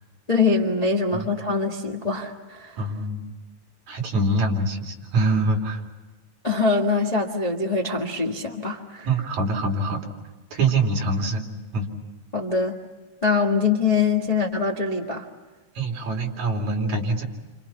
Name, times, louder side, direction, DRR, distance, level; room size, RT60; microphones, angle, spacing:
voice 1, 0.3-2.8 6.4-9.1 12.3-12.8 13.2-15.3, left 4 dB, 20° left, 0 dB, 1.1 m, -23 dB
voice 2, 2.8-3.3 3.9-5.8 9.1-10.0 10.5-11.5 11.7-11.9 15.8-17.2, right 2 dB, 65° right, 2 dB, 4.2 m, -24 dB
29.5 x 27.5 x 5.7 m, 1.2 s
omnidirectional pair, 3.5 m